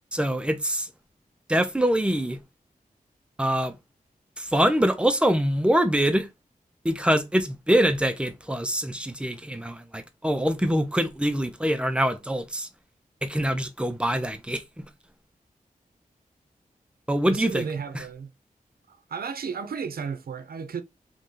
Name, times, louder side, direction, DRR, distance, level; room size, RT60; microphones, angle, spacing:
voice 1, 0.1-0.9 1.5-2.4 3.4-3.8 4.4-6.3 6.8-12.7 13.2-14.8 17.1-17.6 17.9-18.0, equal, 5° right, 0.5 m, -24 dB
voice 2, 17.3-18.3 18.9-20.8, right 6 dB, 90° right, 0.5 m, -33 dB
3.1 x 2.7 x 3.7 m
wide cardioid pair, 100°, 15 cm